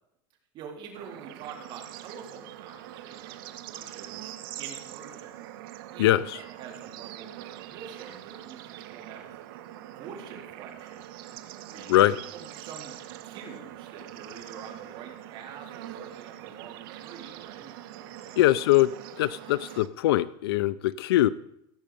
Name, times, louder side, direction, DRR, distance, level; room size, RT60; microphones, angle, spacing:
voice 1, 0.5-5.4 5.9-9.3 10.0-11.1 11.7-12.0 12.3-18.4, right 6 dB, 40° right, 0 dB, 4.0 m, -46 dB
Bird / Insect / Frog, 1.0-19.9, right 13 dB, 65° right, 1.4 m, -43 dB
voice 2, 6.0-6.4 11.9-12.2 18.4-18.9 19.2-21.3, left 15 dB, 90° left, 17 dB, 0.5 m, -22 dB
16.5 x 7.8 x 8.6 m, 0.79 s
supercardioid pair, 155°, 12 cm